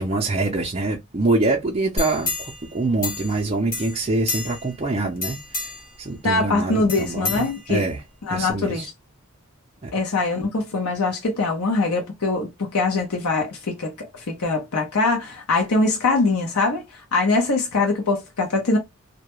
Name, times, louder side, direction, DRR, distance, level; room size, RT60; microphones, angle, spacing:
voice 1, 0.0-5.7 6.0-8.0 8.3-8.9 9.8-9.9, right 2 dB, 30° right, 0.4 m, -25 dB
sound 1, 2.0-3.4 3.7-4.8 5.2-6.0 6.9-8.0 8.5-8.6, left 4 dB, 40° left, 1.3 m, -30 dB
voice 2, 6.2-7.8 8.2-8.9 9.9-16.8 17.1-18.8, left 3 dB, 80° left, 0.7 m, -22 dB
2.2 x 2.1 x 2.9 m
head